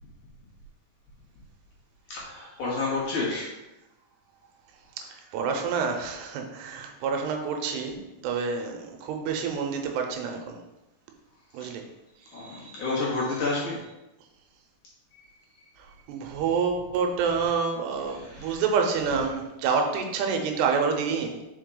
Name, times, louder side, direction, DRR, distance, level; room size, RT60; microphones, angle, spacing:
voice 1, 2.1-3.5 11.6-11.7 12.3-13.8 15.2-15.3 18.1-18.7 19.1-19.2, left 3 dB, 60° left, -6 dB, 2.5 m, -30 dB
voice 2, 5.0-8.0 8.2-10.6 11.5-11.8 12.4-12.8 16.1-21.5, right 5 dB, 85° right, 3 dB, 2.8 m, -28 dB
5.4 x 5.3 x 3.8 m, 0.96 s
omnidirectional pair, 4.8 m